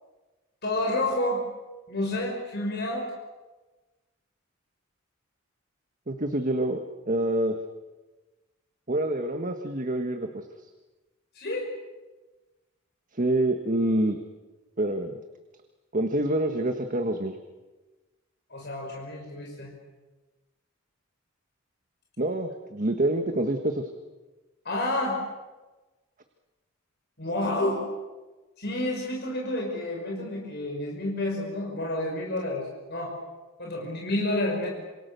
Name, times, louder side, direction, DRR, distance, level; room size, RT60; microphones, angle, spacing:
voice 1, 0.6-1.4 1.9-3.1 11.3-11.7 18.5-19.7 24.6-25.2 27.2-27.8 28.6-33.1 33.6-34.7, left 1 dB, 55° left, -1 dB, 5.8 m, -29 dB
voice 2, 6.1-6.8 7.1-7.6 8.9-10.4 13.1-14.2 14.8-15.1 15.9-17.4 22.2-23.9, right 1 dB, 40° right, 6 dB, 1.6 m, -26 dB
27.5 x 27.0 x 7.0 m, 1.2 s
head